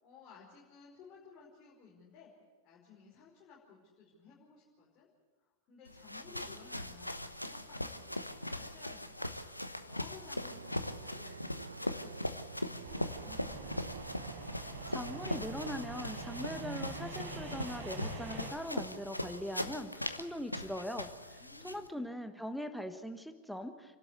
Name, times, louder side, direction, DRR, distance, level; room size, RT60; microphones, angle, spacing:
voice 1, 0.0-2.3 2.6-5.1 5.7-9.3 9.6-13.7 21.4-22.4, left 5 dB, 35° left, -5 dB, 5.3 m, -57 dB
sound 1, 5.9-21.9, left 1 dB, 85° left, 1.0 m, -40 dB
sound 2, 10.5-16.9, right 5 dB, 75° right, 0.6 m, -49 dB
Paper annoncements rustle in the wind train passes by, 12.8-18.5, right 3 dB, 45° right, 4.7 m, -45 dB
voice 2, 14.9-21.4 21.6-24.0, equal, ahead, 7 dB, 1.3 m, -41 dB
29.0 x 12.5 x 8.2 m, 1.3 s
figure-of-eight pair, 90°, 0 cm